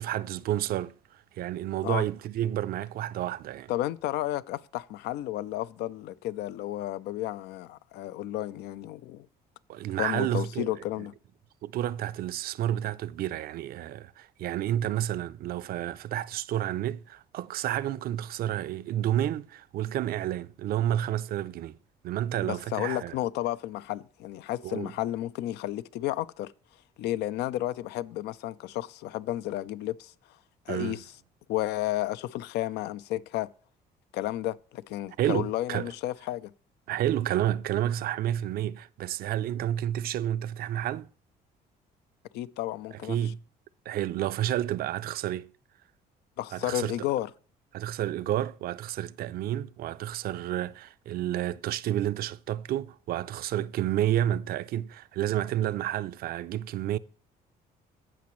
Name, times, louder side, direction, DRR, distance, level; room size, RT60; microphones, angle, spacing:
voice 1, 0.0-3.7 9.7-10.7 11.0-11.1 11.6-21.8 22.0-23.1 24.6-24.9 30.7-31.0 35.2-35.9 36.9-41.1 43.1-43.4 43.9-45.5 46.5-46.9 47.7-57.0, right 12 dB, 60° right, 0.5 m, -30 dB
voice 2, 3.7-9.3 10.0-11.1 22.4-26.5 27.0-30.1 30.7-31.0 31.5-33.5 34.1-36.5 42.3-43.3 46.4-47.3, left 14 dB, 80° left, 0.5 m, -32 dB
17.0 x 6.0 x 3.1 m
cardioid pair, 110°, 17 cm